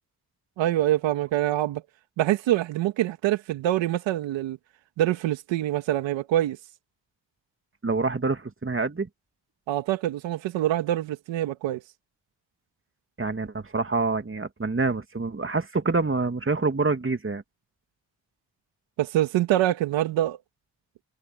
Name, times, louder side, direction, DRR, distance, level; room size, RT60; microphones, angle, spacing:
voice 1, 0.6-1.8 2.2-4.6 5.0-6.6 9.7-11.8 19.0-20.4, right 13 dB, 90° right, 2.1 m, -25 dB
voice 2, 7.8-9.1 13.2-17.4, right 3 dB, 30° right, 2.7 m, -26 dB
supercardioid pair, 45°, 44 cm